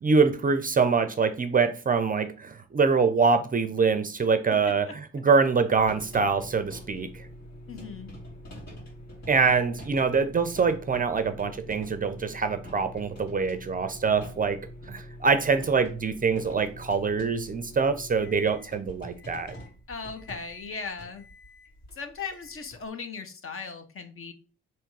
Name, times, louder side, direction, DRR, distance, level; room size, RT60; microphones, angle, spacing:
voice 1, 0.0-7.3 9.3-14.6 14.9-19.5, right 5 dB, 30° right, 0.5 m, -24 dB
sound 1, 5.7-22.9, equal, 60° left, 2.5 m, -44 dB
voice 2, 7.7-8.1 19.9-21.3 22.0-24.3, left 5 dB, 45° left, 0.9 m, -38 dB
3.4 x 3.1 x 4.7 m
cardioid pair, 90°, 30 cm